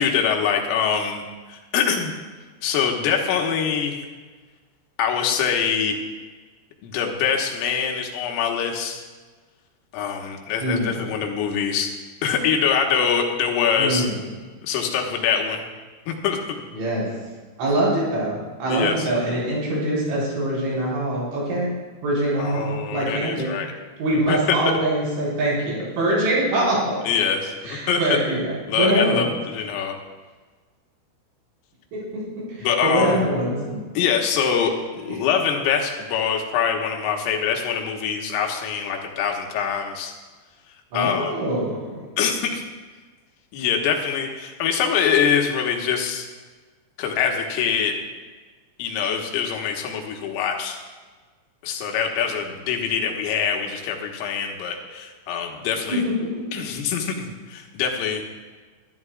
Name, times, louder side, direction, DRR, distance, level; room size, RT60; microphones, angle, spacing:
voice 1, 0.0-2.1 2.6-4.1 5.0-6.0 6.8-9.0 9.9-11.9 12.2-14.1 14.6-15.6 16.1-16.4 18.7-19.1 22.4-23.7 24.3-24.6 27.1-28.2 28.7-30.0 32.6-33.2 34.0-40.1 40.9-41.3 42.2-42.6 43.5-46.3 47.0-47.9 48.8-50.8 51.6-56.0 56.5-58.2, left 7 dB, 85° left, 2 dB, 3.9 m, -24 dB
voice 2, 10.6-11.0 13.8-14.2 16.7-17.1 17.6-21.7 22.0-23.5 24.0-27.0 27.6-28.5 28.8-29.3 31.9-32.2 32.5-33.8 35.1-35.2 40.9-42.0 55.9-56.4, right 1 dB, 70° right, -6 dB, 7.1 m, -24 dB
23.5 x 12.5 x 2.4 m, 1.4 s
omnidirectional pair, 5.7 m